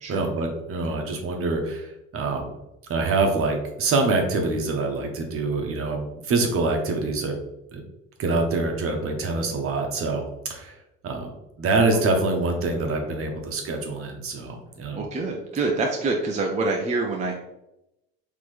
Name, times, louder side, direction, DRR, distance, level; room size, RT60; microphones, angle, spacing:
voice 1, 0.1-2.5 2.9-7.4 7.7-7.8 8.2-10.8 11.0-11.3 11.6-15.1, right 3 dB, 45° right, 3 dB, 1.1 m, -25 dB
voice 2, 14.9-17.3, right 3 dB, 25° right, 0 dB, 0.6 m, -26 dB
4.2 x 3.2 x 3.2 m, 0.90 s
supercardioid pair, 80°, 30 cm